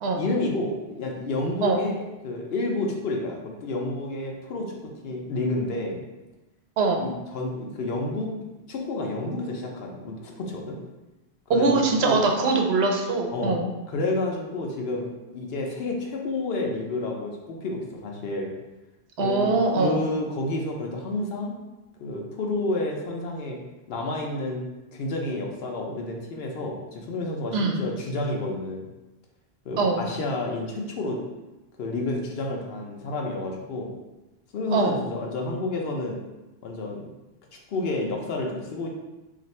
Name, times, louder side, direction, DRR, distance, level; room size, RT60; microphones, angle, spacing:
voice 1, 0.1-6.0 7.0-8.3 8.7-10.8 11.5-12.2 13.3-18.5 19.2-21.5 22.0-23.6 23.9-24.6 24.9-28.9 29.7-31.2 31.8-33.9 34.5-36.2 36.6-37.1 37.5-38.9, left 2 dB, 70° left, 0 dB, 0.8 m, -30 dB
voice 2, 11.5-13.7 19.2-20.0 27.5-27.8 29.8-30.0 34.7-35.0, right 3 dB, 75° right, 2 dB, 0.8 m, -22 dB
2.6 x 2.5 x 4.1 m, 1.0 s
omnidirectional pair, 1.1 m